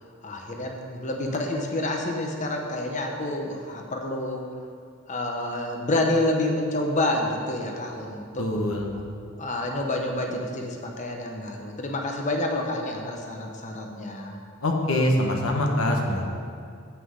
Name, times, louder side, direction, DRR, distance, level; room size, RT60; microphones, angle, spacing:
voice 1, 0.2-4.4 5.1-8.5 9.0-9.1 9.4-14.4, left 1 dB, 35° left, 2 dB, 0.9 m, -28 dB
voice 2, 8.4-8.9 14.6-16.2, left 1 dB, 70° left, 1 dB, 1.2 m, -24 dB
8.2 x 5.8 x 6.4 m, 2.3 s
head